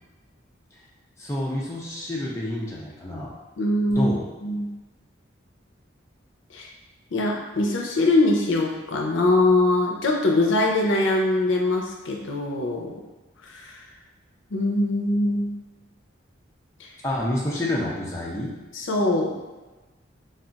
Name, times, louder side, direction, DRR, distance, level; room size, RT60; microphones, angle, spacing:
voice 1, 1.2-3.3 3.9-4.3 17.0-18.5, left 1 dB, 15° left, -5 dB, 0.4 m, -28 dB
voice 2, 3.6-4.1 4.4-4.7 6.5-6.7 7.1-13.0 13.5-13.8 14.5-15.5 16.8-16.9 18.7-19.4, left 2 dB, 75° left, 0 dB, 0.5 m, -22 dB
2.3 x 2.3 x 3.8 m, 1.2 s
head